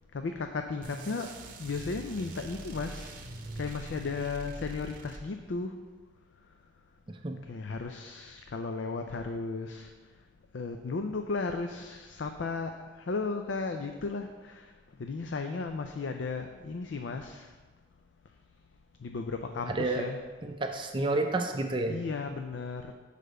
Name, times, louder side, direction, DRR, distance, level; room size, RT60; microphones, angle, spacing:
voice 1, 0.1-5.8 6.4-6.5 7.4-10.2 10.5-17.6 18.3-18.4 19.0-20.3 20.7-20.8 21.9-22.9, left 4 dB, 70° left, 5 dB, 0.4 m, -35 dB
sound 1, 0.8-5.6, right 2 dB, 45° right, 0.8 m, -43 dB
voice 2, 7.1-7.4 19.7-20.1 20.4-22.0, right 2 dB, 25° right, 4 dB, 0.4 m, -30 dB
6.7 x 5.0 x 6.5 m, 1.4 s
head